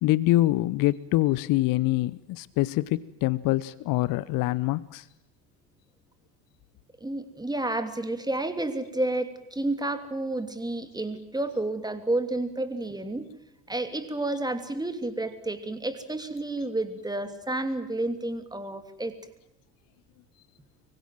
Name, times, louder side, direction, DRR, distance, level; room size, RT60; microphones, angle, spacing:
voice 1, 0.0-5.0, left 17 dB, 45° left, 20 dB, 0.9 m, -25 dB
voice 2, 7.0-13.3 13.7-19.1, right 2 dB, 10° right, 9 dB, 3.0 m, -30 dB
26.0 x 24.0 x 7.6 m, 0.85 s
figure-of-eight pair, 65°, 48 cm